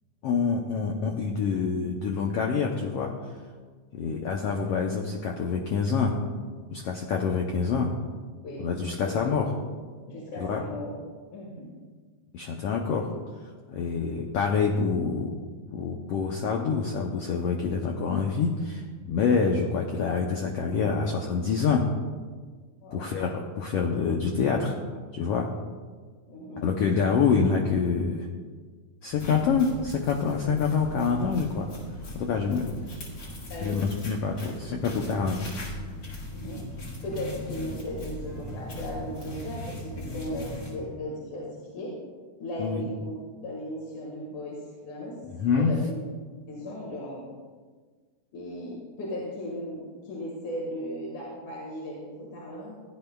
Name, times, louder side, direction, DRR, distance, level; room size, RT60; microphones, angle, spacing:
voice 1, 0.2-3.1 4.0-6.2 6.7-7.9 8.6-9.5 10.4-10.6 12.3-13.1 13.7-15.3 15.7-21.9 22.9-24.7 25.1-25.5 26.6-28.3 29.0-31.7 32.1-32.8 33.6-35.4 42.6-42.9 45.3-45.7, left 5 dB, 85° left, 1 dB, 1.3 m, -26 dB
voice 2, 9.0-9.4 10.1-11.0 11.3-11.7 22.8-23.1 26.3-26.6 33.5-33.8 36.3-41.9 42.4-43.1 43.4-44.6 44.8-45.1 45.6-45.8 46.5-47.2 48.3-52.7, left 1 dB, 70° left, -4 dB, 3.1 m, -37 dB
sound 1, 29.1-40.8, left 1 dB, 40° left, 2.1 m, -39 dB
16.0 x 10.5 x 2.3 m, 1.5 s
omnidirectional pair, 3.7 m